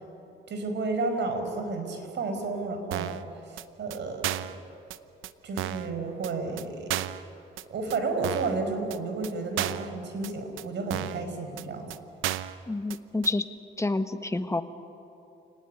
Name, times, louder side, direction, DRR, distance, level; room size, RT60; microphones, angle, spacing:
voice 1, 0.5-4.2 5.4-7.0 7.7-11.9, right 3 dB, 65° right, 6 dB, 5.2 m, -32 dB
sound 1, 2.9-3.2 3.6-3.7 3.9-4.0 4.2-4.6 4.9-5.0 5.2-5.3 5.6-5.9 6.2-6.3 6.6-6.7 6.9-7.2 7.6-7.7 7.9-8.0 8.2-8.6 8.9-9.0 9.2-9.3 9.6-9.9 10.2-10.3 10.6-10.7 10.9-11.2 11.6-11.7 11.9-12.0 12.2-12.6 12.9-13.0 13.2-13.3, right 13 dB, 90° right, 0.8 m, -32 dB
voice 2, 12.7-13.4 13.8-14.6, left 2 dB, 15° left, 9 dB, 1.5 m, -28 dB
28.5 x 19.0 x 9.8 m, 2.8 s
cardioid pair, 90°, 20 cm